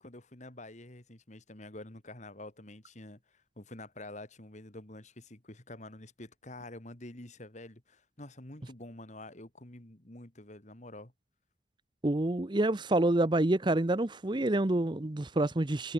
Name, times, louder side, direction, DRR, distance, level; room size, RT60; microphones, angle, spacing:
voice 1, 0.0-11.1, left 1 dB, 40° left, 2.5 m, -48 dB
voice 2, 12.0-15.9, right 1 dB, 25° right, 0.7 m, -27 dB
head